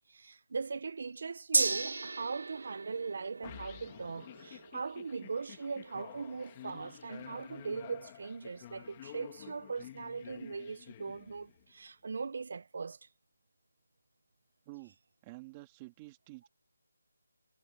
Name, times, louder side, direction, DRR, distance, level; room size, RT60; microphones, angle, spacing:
voice 1, 0.1-13.1, right 4 dB, 45° right, 0.9 m, -40 dB
Gong, 1.5-9.3 9.6-9.7, right 3 dB, 70° right, 3.2 m, -38 dB
sound 1, 3.4-11.7, left 13 dB, 20° left, 2.4 m, -51 dB
voice 2, 14.7-15.0 15.2-16.5, right 22 dB, 15° right, 2.2 m, -49 dB
figure-of-eight pair, 170°, 0 cm